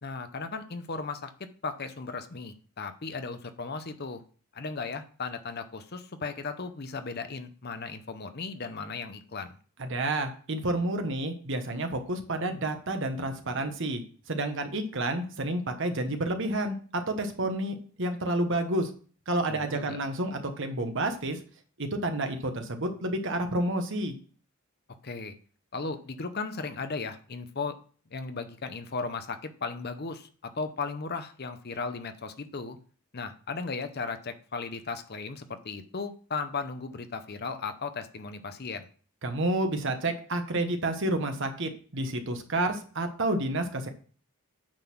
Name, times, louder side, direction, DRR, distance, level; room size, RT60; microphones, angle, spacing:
voice 1, 0.0-4.2 4.5-9.5 19.5-20.0 25.0-25.3 25.7-27.8 28.1-32.8 33.1-38.9, left 4 dB, 45° left, 9 dB, 0.8 m, -36 dB
voice 2, 9.8-14.0 14.3-18.9 19.3-21.4 21.8-24.1 39.2-43.9, right 1 dB, 55° right, 6 dB, 1.2 m, -30 dB
8.9 x 3.9 x 6.0 m, 0.42 s
head